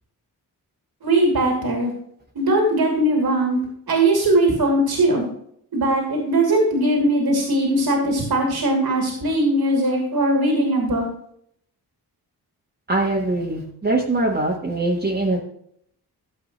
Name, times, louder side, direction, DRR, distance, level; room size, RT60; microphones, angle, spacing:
voice 1, 1.0-1.9 2.3-3.6 3.9-5.2 5.7-11.1, right 1 dB, 70° right, 1 dB, 2.9 m, -20 dB
voice 2, 12.9-15.4, right 2 dB, 25° right, -4 dB, 1.5 m, -22 dB
14.0 x 7.5 x 3.1 m, 0.66 s
wide cardioid pair, 160°, 39 cm